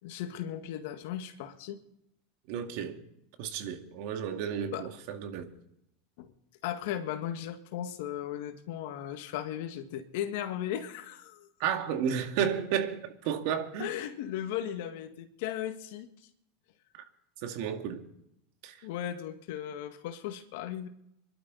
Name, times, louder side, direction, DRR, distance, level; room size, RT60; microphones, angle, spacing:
voice 1, 0.0-1.8 4.7-4.9 6.2-6.3 6.6-11.5 13.8-16.1 18.8-20.9, left 11 dB, 70° left, 1.7 m, -36 dB
voice 2, 2.5-3.0 3.4-5.5 11.6-13.9 16.9-17.0 17.4-18.0 18.6-18.9, right 8 dB, 65° right, 2.1 m, -32 dB
23.5 x 12.0 x 4.0 m
hypercardioid pair, 110°, 0 cm